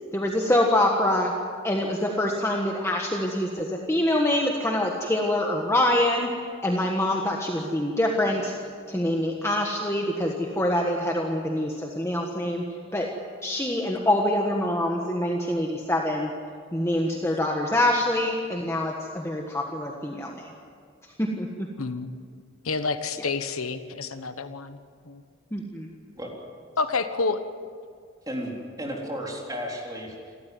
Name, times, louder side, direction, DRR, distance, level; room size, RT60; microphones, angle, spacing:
voice 1, 0.1-6.3 6.6-8.5 8.9-12.6 12.9-13.2 13.4-16.3 16.7-20.5 21.2-21.7 25.5-25.9, left 1 dB, 15° left, 0 dB, 1.4 m, -25 dB
voice 2, 21.8-22.1 22.6-24.8 25.0-25.2 26.8-27.4, left 4 dB, 90° left, 9 dB, 1.3 m, -28 dB
voice 3, 28.3-30.3, equal, 15° right, -1 dB, 3.8 m, -34 dB
29.0 x 14.0 x 9.5 m, 2.2 s
head